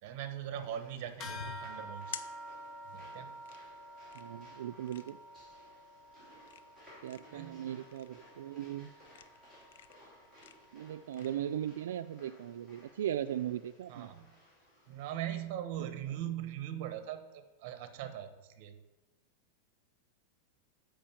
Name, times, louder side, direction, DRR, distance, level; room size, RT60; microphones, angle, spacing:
voice 1, 0.0-2.2 2.9-3.4 7.3-7.7 13.9-14.3 14.9-18.8, right 11 dB, 45° right, 10 dB, 1.0 m, -41 dB
sound 1, 0.6-15.2, equal, 10° left, 3.5 m, -60 dB
sound 2, 1.0-11.3, left 9 dB, 75° left, 0.6 m, -52 dB
sound 3, 1.2-11.0, right 1 dB, 30° left, 0.8 m, -50 dB
voice 2, 4.1-5.2 7.0-8.9 10.7-14.1, right 11 dB, 90° right, 10 dB, 0.3 m, -38 dB
8.8 x 5.1 x 7.1 m, 1.1 s
supercardioid pair, 165°, 0 cm